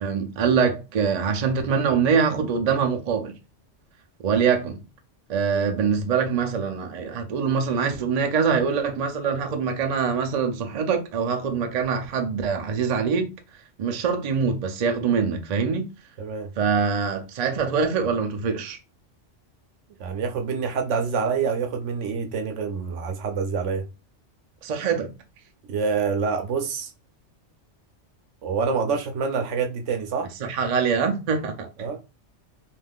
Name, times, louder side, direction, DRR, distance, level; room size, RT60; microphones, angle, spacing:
voice 1, 0.0-3.3 4.2-4.8 5.3-13.3 13.8-15.9 16.6-18.8 24.6-25.1 30.4-31.9, right 6 dB, 50° right, 0.5 m, -24 dB
voice 2, 5.5-5.9 16.2-16.5 20.0-23.8 25.7-26.9 28.4-30.3 31.8-32.0, right 5 dB, 80° right, 0.9 m, -26 dB
3.4 x 2.5 x 2.3 m
omnidirectional pair, 1.2 m